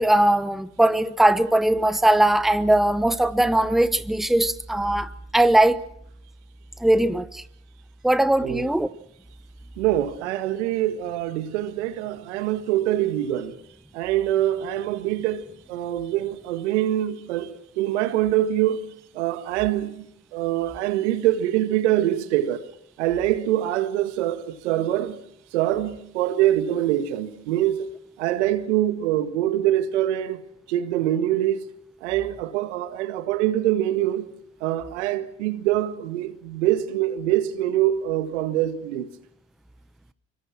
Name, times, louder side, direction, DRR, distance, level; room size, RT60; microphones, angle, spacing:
voice 1, 0.0-5.8 6.8-7.4 8.0-8.9, right 1 dB, ahead, 1.1 m, -20 dB
voice 2, 9.8-13.6 13.9-22.7 23.0-25.2 25.5-27.9 28.2-30.4 30.7-31.6 32.0-34.3 34.6-39.1, right 13 dB, 80° right, 1.8 m, -24 dB
24.5 x 24.0 x 6.0 m
hypercardioid pair, 65°, 34 cm